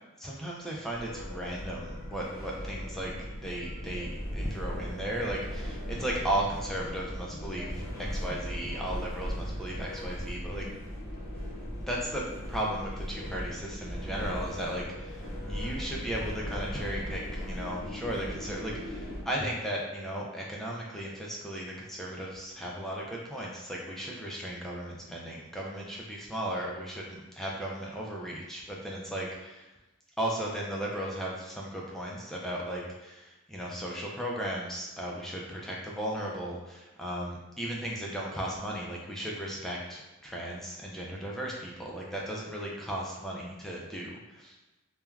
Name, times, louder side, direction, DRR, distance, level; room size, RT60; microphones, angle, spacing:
voice 1, 0.2-3.1 3.4-7.8 8.1-10.7 11.9-29.7 30.2-44.6, right 1 dB, ahead, -3 dB, 0.3 m, -36 dB
sound 1, 0.9-19.2, equal, 40° left, 0.7 m, -38 dB
3.1 x 2.2 x 2.3 m, 1.0 s
head